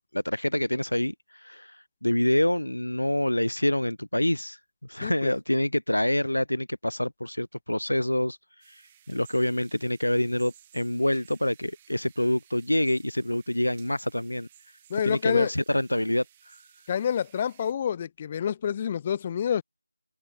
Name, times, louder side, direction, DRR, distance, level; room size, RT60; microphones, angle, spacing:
voice 1, 0.0-4.6 4.9-8.4 8.7-8.8 9.1-14.5 15.0-16.6, left 1 dB, 80° left, 0.9 m, -26 dB
voice 2, 5.0-5.3 14.9-15.5 16.9-19.6, left 8 dB, 20° left, 2.3 m, -28 dB
sound 1, 8.6-17.7, right 11 dB, 15° right, 6.5 m, -58 dB
figure-of-eight pair, 165°, 0 cm